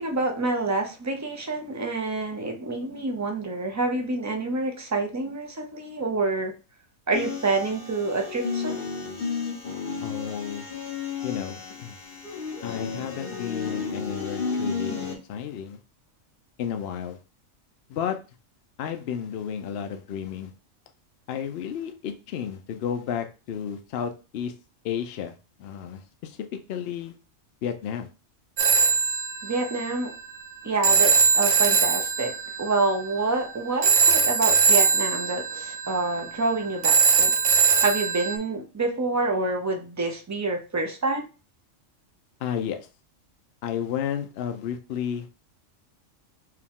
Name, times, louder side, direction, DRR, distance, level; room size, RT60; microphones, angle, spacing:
voice 1, 0.0-6.5 7.1-8.8 29.4-30.1 30.6-32.3 32.6-41.3, right 3 dB, 25° right, 3 dB, 0.3 m, -27 dB
sound 1, 7.1-15.1, left 5 dB, 40° left, 1.4 m, -32 dB
voice 2, 10.0-10.7 11.2-12.0 12.6-15.8 16.6-17.2 17.9-18.2 18.8-20.5 21.3-24.5 24.8-25.3 25.6-26.4 26.7-27.1 27.6-28.1 42.4-42.9 43.6-45.3, left 8 dB, 65° left, 6 dB, 0.7 m, -32 dB
Telephone, 28.6-38.4, right 6 dB, 65° right, 0.8 m, -22 dB
4.7 x 2.3 x 3.6 m, 0.32 s
omnidirectional pair, 1.3 m